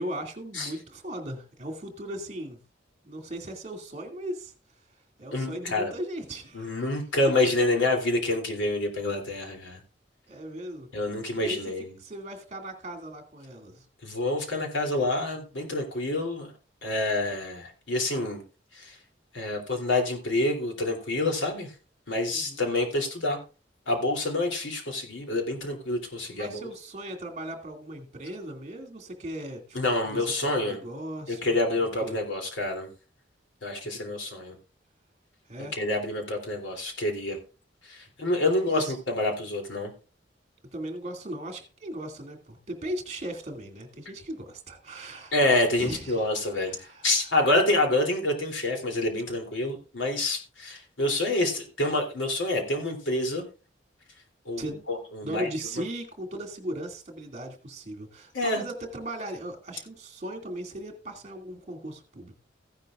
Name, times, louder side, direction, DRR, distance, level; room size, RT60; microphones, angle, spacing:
voice 1, 0.0-2.6 3.0-4.5 5.2-6.9 10.3-10.9 11.4-11.7 12.0-13.9 22.3-22.6 26.3-29.8 30.1-32.2 33.8-33.9 35.5-35.7 38.7-39.0 40.7-45.3 45.8-46.3 46.5-47.1 54.6-54.8 55.2-62.3, right 1 dB, 35° right, 4 dB, 2.4 m, -37 dB
voice 2, 5.3-5.9 6.5-9.8 10.9-11.9 14.0-16.5 16.8-18.4 18.7-19.0 19.3-21.7 22.1-23.4 23.9-26.7 29.7-30.8 31.3-32.9 33.6-34.6 35.8-37.4 37.9-39.9 45.3-53.4 54.4-55.5 58.3-58.6, left 2 dB, 85° left, 2 dB, 3.1 m, -27 dB
15.0 x 10.5 x 2.5 m, 0.33 s
head